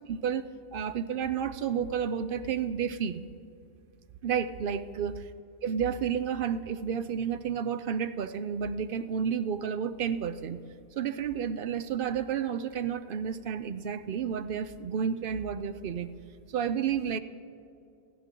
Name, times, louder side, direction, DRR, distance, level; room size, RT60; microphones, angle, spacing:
voice 1, 0.1-0.4 0.7-3.2 4.2-5.2 5.6-10.6 11.0-16.1 16.5-17.2, right 7 dB, 60° right, 11 dB, 0.7 m, -31 dB
28.0 x 9.6 x 3.7 m, 2.5 s
omnidirectional pair, 1.1 m